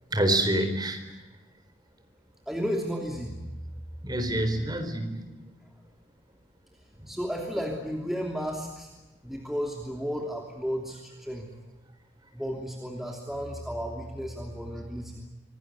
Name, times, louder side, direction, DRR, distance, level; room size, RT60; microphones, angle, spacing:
voice 1, 0.1-1.2 4.0-5.6 7.0-7.1, right 1 dB, 20° right, 6 dB, 4.3 m, -28 dB
voice 2, 2.5-3.3 7.1-8.9 9.2-11.5 12.3-15.1, equal, ahead, 0 dB, 2.9 m, -33 dB
26.0 x 20.0 x 9.4 m, 1.1 s
head